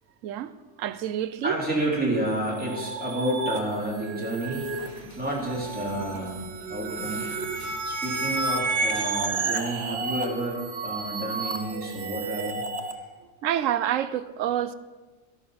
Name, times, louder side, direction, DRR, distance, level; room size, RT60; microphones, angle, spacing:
voice 1, 0.2-0.5 0.8-1.6 13.4-14.7, right 11 dB, 85° right, 1.0 m, -27 dB
voice 2, 1.4-4.6 5.2-7.6 7.8-12.6, right 1 dB, 5° right, 3.7 m, -30 dB
sound 1, 2.2-12.9, right 3 dB, 60° right, 1.2 m, -31 dB
Dog, 4.4-9.3, equal, 10° left, 3.0 m, -47 dB
14.0 x 11.0 x 5.1 m
omnidirectional pair, 1.3 m